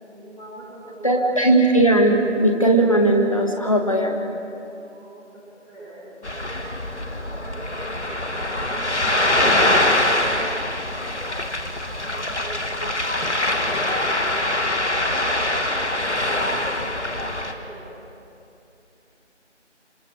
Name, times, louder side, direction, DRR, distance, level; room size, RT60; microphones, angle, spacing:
voice 1, 0.0-1.3 4.7-11.1 11.8-12.8 15.1-17.8, right 1 dB, 5° left, -23 dB, 2.9 m, -41 dB
voice 2, 1.0-4.1 12.8-12.9, right 1 dB, 30° left, 2 dB, 1.7 m, -18 dB
Ocean, 6.2-17.5, left 1 dB, 70° left, 2.0 m, -23 dB
26.5 x 25.0 x 4.7 m, 2.8 s
figure-of-eight pair, 170°, 36 cm